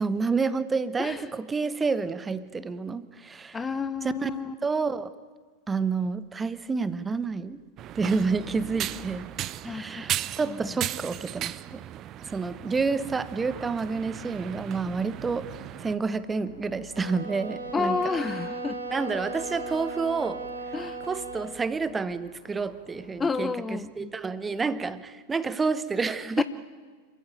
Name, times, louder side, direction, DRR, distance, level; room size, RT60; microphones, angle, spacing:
voice 1, 0.0-3.6 4.0-4.3 4.6-5.1 5.7-7.6 7.9-9.3 9.6-11.8 12.2-15.5 15.8-18.2 18.9-20.5 21.0-26.4, right 4 dB, 15° right, 15 dB, 1.0 m, -29 dB
voice 2, 3.5-4.5 9.6-10.1 10.5-10.6 17.7-18.8 20.7-21.0 23.2-24.1 26.4-26.5, left 4 dB, 15° left, 14 dB, 0.6 m, -30 dB
sound 1, 7.8-16.0, right 12 dB, 35° right, 0.6 m, -36 dB
sound 2, 12.9-23.5, left 2 dB, 75° left, 3.3 m, -53 dB
sound 3, 16.9-21.6, right 3 dB, 80° right, 4.1 m, -36 dB
27.0 x 14.5 x 9.0 m, 1.5 s
figure-of-eight pair, 90°, 0 cm